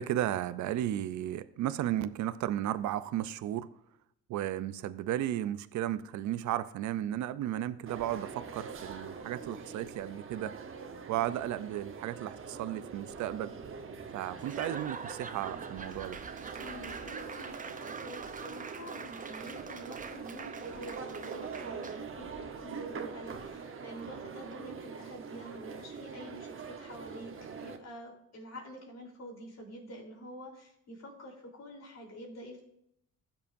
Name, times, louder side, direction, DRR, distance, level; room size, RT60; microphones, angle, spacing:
voice 1, 0.0-3.7 4.3-10.5 11.1-13.5 14.1-16.2, right 12 dB, 70° right, 15 dB, 0.5 m, -34 dB
sound 1, 7.8-27.8, right 5 dB, 45° right, 1.0 m, -44 dB
Laughter / Applause / Crowd, 14.4-22.2, right 5 dB, 25° right, 0.7 m, -44 dB
voice 2, 16.6-32.6, equal, 60° left, -1 dB, 3.6 m, -47 dB
16.0 x 7.0 x 2.6 m, 0.77 s
cardioid pair, 90°, 30 cm